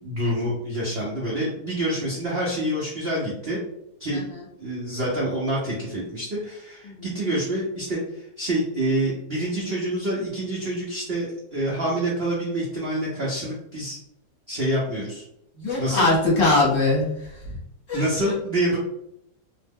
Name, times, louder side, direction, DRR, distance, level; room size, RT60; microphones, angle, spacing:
voice 1, 0.0-3.6 4.0-4.2 4.6-14.0 14.5-15.2 15.8-16.1 17.9-18.8, right 1 dB, 55° right, -5 dB, 0.6 m, -27 dB
voice 2, 15.6-17.1 17.9-18.3, left 2 dB, 50° left, -6 dB, 1.2 m, -21 dB
2.9 x 2.1 x 3.4 m, 0.79 s
omnidirectional pair, 1.9 m